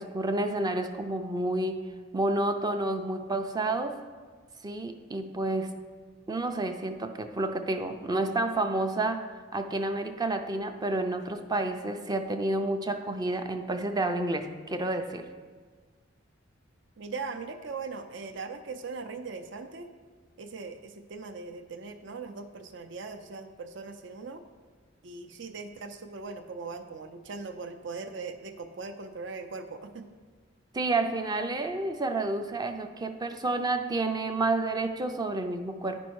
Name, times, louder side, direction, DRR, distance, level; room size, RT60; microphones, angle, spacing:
voice 1, 0.0-1.8 2.1-4.0 4.6-5.7 6.3-9.2 9.5-15.2 30.7-36.0, right 2 dB, 20° right, 6 dB, 0.4 m, -30 dB
voice 2, 17.0-19.9 20.4-24.4 25.0-30.0, right 4 dB, 65° right, 7 dB, 0.6 m, -40 dB
9.2 x 5.3 x 4.6 m, 1.5 s
head